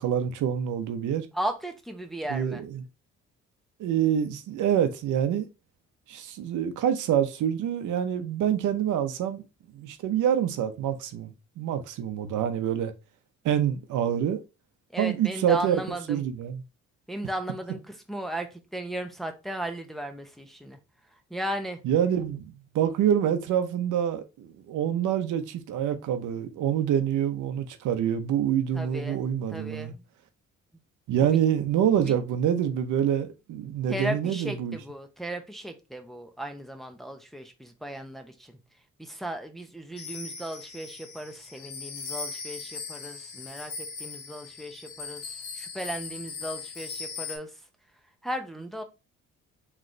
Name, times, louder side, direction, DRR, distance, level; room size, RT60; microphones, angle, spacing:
voice 1, 0.0-1.3 2.3-2.8 3.8-5.5 6.1-9.4 9.7-12.9 13.4-14.4 15.0-15.8 16.1-16.6 21.8-29.9 31.1-34.8, right 9 dB, 80° right, 0.7 m, -26 dB
voice 2, 1.3-2.6 14.9-16.2 17.1-20.8 21.3-21.8 28.7-29.2 29.5-30.0 31.2-31.4 32.0-32.1 33.9-38.6 39.0-47.5 48.2-48.8, right 1 dB, ahead, 0.7 m, -36 dB
sound 1, 40.0-47.4, left 5 dB, 85° left, 1.2 m, -39 dB
3.8 x 3.2 x 3.1 m
cardioid pair, 90°, 30 cm